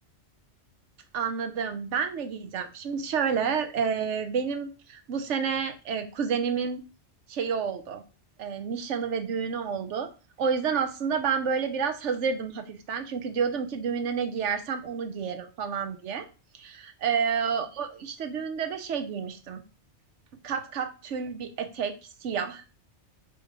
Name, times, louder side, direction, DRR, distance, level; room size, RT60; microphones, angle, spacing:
voice 1, 1.1-6.8 7.3-8.0 8.4-10.1 10.4-16.3 16.5-19.6 20.4-22.6, right 6 dB, 85° right, 8 dB, 1.2 m, -30 dB
8.0 x 3.1 x 5.1 m, 0.32 s
omnidirectional pair, 1.2 m